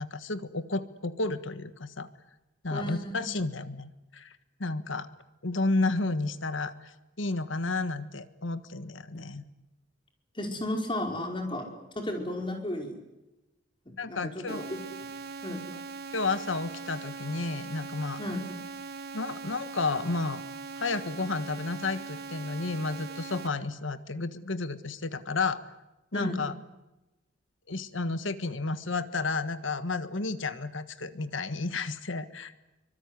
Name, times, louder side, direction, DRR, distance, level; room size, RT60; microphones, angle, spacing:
voice 1, 0.0-2.1 2.6-5.1 5.4-9.4 14.0-14.7 16.1-18.2 19.1-20.4 20.8-25.6 26.1-26.5 27.7-32.6, left 3 dB, 75° left, 12 dB, 1.5 m, -32 dB
voice 2, 2.7-3.3 9.1-9.2 10.4-11.7 12.0-13.0 13.9-14.8 15.4-15.6 18.2-18.4 26.1-26.4, left 1 dB, 25° left, 3 dB, 5.2 m, -34 dB
sound 1, 14.5-23.5, right 4 dB, 55° right, 1.5 m, -41 dB
24.5 x 24.5 x 9.7 m, 0.99 s
head